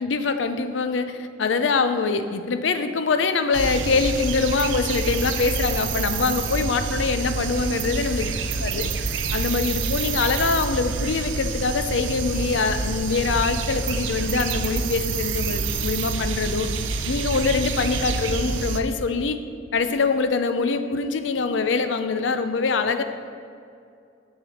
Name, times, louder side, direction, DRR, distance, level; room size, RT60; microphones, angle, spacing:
voice 1, 0.0-8.3 8.6-8.9 9.3-16.7 17.0-19.4 19.7-23.0, left 4 dB, 75° left, 9 dB, 0.5 m, -24 dB
sound 1, 3.5-18.8, right 4 dB, 85° right, 0.5 m, -27 dB
6.8 x 6.8 x 4.2 m, 2.4 s
head